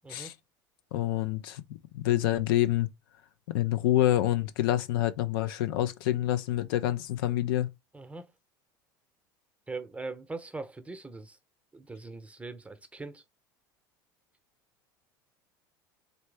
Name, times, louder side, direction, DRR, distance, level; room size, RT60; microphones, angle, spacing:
voice 1, 0.9-1.6 1.9-2.9 3.5-7.7, left 13 dB, 75° left, 0.5 m, -27 dB
voice 2, 7.9-8.3 9.7-11.4 11.7-13.2, right 3 dB, 10° right, 0.8 m, -41 dB
4.0 x 3.2 x 3.4 m
hypercardioid pair, 80°, 12 cm